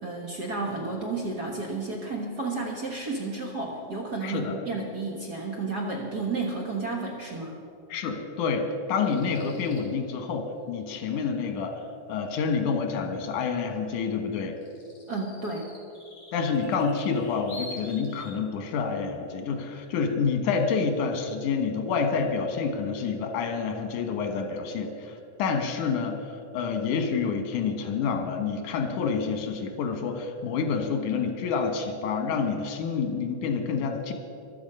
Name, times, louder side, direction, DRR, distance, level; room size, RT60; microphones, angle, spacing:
voice 1, 0.0-7.6 15.1-15.7, right 3 dB, 45° right, -1 dB, 1.4 m, -32 dB
voice 2, 4.2-4.5 7.9-11.8 12.1-14.6 16.3-26.2 26.5-34.1, left 5 dB, 85° left, 5 dB, 2.7 m, -28 dB
sound 1, 9.1-9.8 13.9-14.0 14.3-18.4, left 2 dB, 55° left, 4.9 m, -46 dB
14.5 x 12.0 x 5.5 m, 2.5 s
omnidirectional pair, 3.4 m